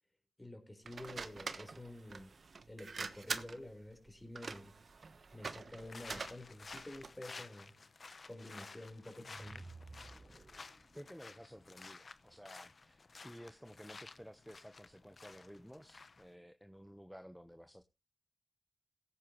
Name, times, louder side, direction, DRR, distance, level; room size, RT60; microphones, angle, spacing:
voice 1, 0.4-2.3 2.7-4.7 5.3-7.7 8.3-9.7, left 1 dB, 20° left, 4.4 m, -50 dB
sound 1, 0.8-7.2, right 4 dB, 65° right, 1.2 m, -45 dB
sound 2, 5.8-16.3, left 4 dB, 60° left, 0.9 m, -54 dB
sound 3, 9.0-11.0, right 3 dB, 35° right, 0.8 m, -54 dB
voice 2, 10.6-17.8, equal, ahead, 1.1 m, -54 dB
17.5 x 9.3 x 3.1 m
cardioid pair, 50°, 0 cm